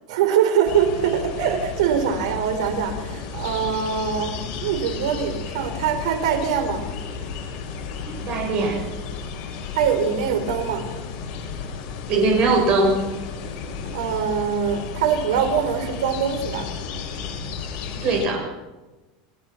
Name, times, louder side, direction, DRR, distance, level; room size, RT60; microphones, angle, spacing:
voice 1, 0.1-6.9 9.7-10.9 13.9-16.7, right 7 dB, 80° right, 7 dB, 4.7 m, -23 dB
sound 1, 0.6-18.3, left 5 dB, 45° left, 5.3 m, -33 dB
voice 2, 8.1-8.8 12.1-13.0 17.9-18.5, right 3 dB, 40° right, 1 dB, 7.3 m, -21 dB
29.5 x 17.5 x 6.0 m, 1.2 s
supercardioid pair, 160°, 3 cm